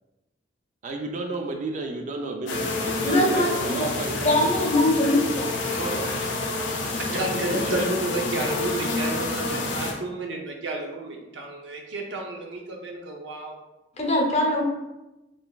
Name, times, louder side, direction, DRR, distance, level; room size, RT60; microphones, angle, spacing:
voice 1, 0.8-4.6 5.7-6.0 7.0-7.9, right 2 dB, 40° right, 3 dB, 0.3 m, -33 dB
sound 1, 2.5-9.9, left 3 dB, 85° left, 0.6 m, -28 dB
voice 2, 3.0-3.9 4.2-5.5 5.9-6.1 14.0-14.6, left 1 dB, 35° left, 0 dB, 0.7 m, -22 dB
voice 3, 7.1-13.5, right 2 dB, 80° right, 0 dB, 0.7 m, -31 dB
3.8 x 3.3 x 2.3 m, 1.0 s
head